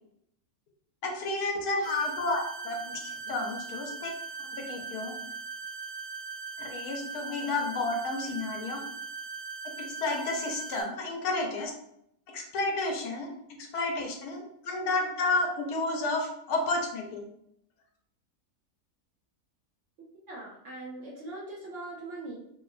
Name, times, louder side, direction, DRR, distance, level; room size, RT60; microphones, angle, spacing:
voice 1, 1.0-3.0 3.3-4.1 4.7-5.1 6.6-8.8 10.0-11.7 12.3-13.3 13.7-17.2, left 2 dB, 80° left, 1 dB, 1.1 m, -31 dB
sound 1, 1.8-10.8, right 4 dB, 85° right, 1.2 m, -40 dB
voice 2, 20.0-22.4, right 2 dB, 65° right, -2 dB, 0.7 m, -41 dB
2.8 x 2.1 x 2.3 m, 0.74 s
omnidirectional pair, 1.6 m